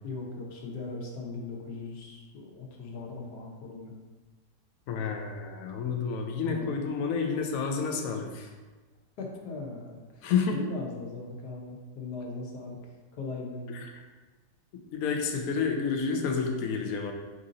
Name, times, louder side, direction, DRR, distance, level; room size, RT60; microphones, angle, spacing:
voice 1, 0.0-3.9 6.5-6.7 9.2-12.8 13.1-13.9, left 3 dB, 85° left, -1 dB, 1.4 m, -39 dB
voice 2, 4.9-8.5 10.2-10.6 13.7-14.0 14.9-17.1, left 5 dB, 70° left, 3 dB, 0.9 m, -30 dB
4.7 x 2.7 x 3.8 m, 1.3 s
omnidirectional pair, 1.7 m